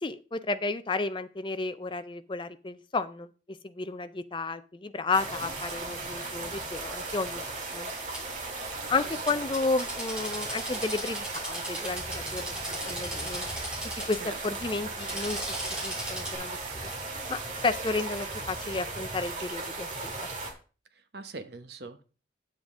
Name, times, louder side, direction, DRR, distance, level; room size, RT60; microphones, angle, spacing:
voice 1, 0.0-7.9 8.9-12.6 12.8-13.5 14.1-14.2 14.4-15.4 15.8-16.6 17.3-20.3, left 3 dB, 25° left, 12 dB, 0.5 m, -32 dB
sound 1, 5.1-20.5, right 3 dB, 40° right, 1.9 m, -37 dB
Drill, 8.1-8.2 9.3-14.2 14.9-16.3, equal, 5° right, 3.2 m, -37 dB
voice 2, 8.8-9.2 14.2-14.3 20.9-22.0, right 3 dB, 55° right, 9 dB, 0.9 m, -43 dB
8.8 x 7.4 x 3.6 m, 0.36 s
head